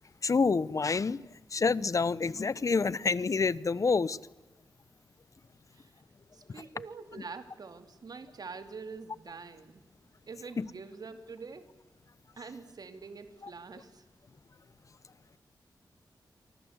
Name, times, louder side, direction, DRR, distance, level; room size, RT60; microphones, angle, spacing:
voice 1, 0.2-1.2 1.5-4.2 10.6-10.7, left 4 dB, 45° left, 20 dB, 0.8 m, -27 dB
voice 2, 6.3-9.8 10.3-11.7 12.4-14.1, right 4 dB, 55° right, 9 dB, 2.5 m, -45 dB
29.5 x 24.0 x 8.0 m, 1.1 s
wide cardioid pair, 90°, 8 cm